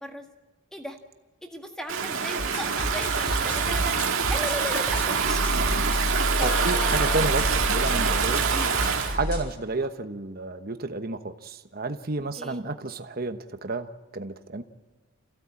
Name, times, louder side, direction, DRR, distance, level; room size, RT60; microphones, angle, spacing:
voice 1, 1.4-4.0 4.2-5.5 6.3-7.4 8.5-8.9 12.4-12.6, equal, 5° left, 3 dB, 1.8 m, -36 dB
Stream / Ocean, 1.9-9.2, right 6 dB, 70° right, 1.9 m, -26 dB
sound 1, 2.4-9.4, equal, 50° left, 6.5 m, -30 dB
voice 2, 6.4-8.4 9.1-14.6, right 3 dB, 40° right, 8 dB, 1.1 m, -31 dB
27.0 x 16.0 x 8.5 m, 1.3 s
head